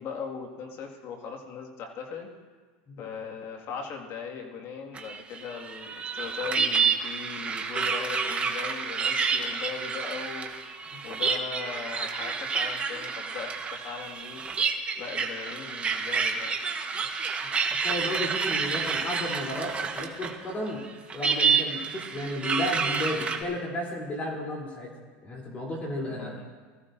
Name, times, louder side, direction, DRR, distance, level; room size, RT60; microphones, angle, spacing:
voice 1, 0.0-2.3 3.0-10.5 10.8-14.4 15.0-16.6 16.9-17.1 26.0-26.5, left 6 dB, 50° left, 1 dB, 2.0 m, -39 dB
sound 1, 4.9-20.4 20.7-23.4, right 5 dB, 20° right, 1.3 m, -29 dB
voice 2, 17.8-20.8 21.1-24.9 25.2-26.3, left 1 dB, 25° left, -2 dB, 3.4 m, -33 dB
21.0 x 14.5 x 2.7 m, 1.5 s
supercardioid pair, 120°, 6 cm